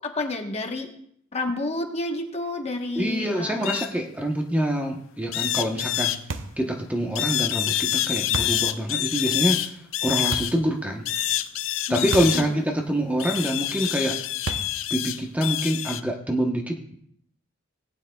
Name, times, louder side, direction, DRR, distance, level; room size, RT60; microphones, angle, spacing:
voice 1, 0.2-0.9 1.3-3.6 11.9-12.6, left 2 dB, 30° left, 3 dB, 1.1 m, -30 dB
voice 2, 3.0-6.2 6.6-11.1 11.9-14.2 14.9-16.9, equal, 5° right, 1 dB, 0.8 m, -26 dB
sound 1, 3.6-3.9 5.3-6.2 7.2-10.6 11.1-12.5 13.2-16.0, left 13 dB, 70° left, 0.5 m, -27 dB
sound 2, 6.3-6.7 8.3-8.7 10.3-10.7 12.1-12.5 12.8-12.9 14.5-14.9, right 3 dB, 65° right, 0.7 m, -32 dB
18.5 x 9.1 x 2.3 m, 0.68 s
head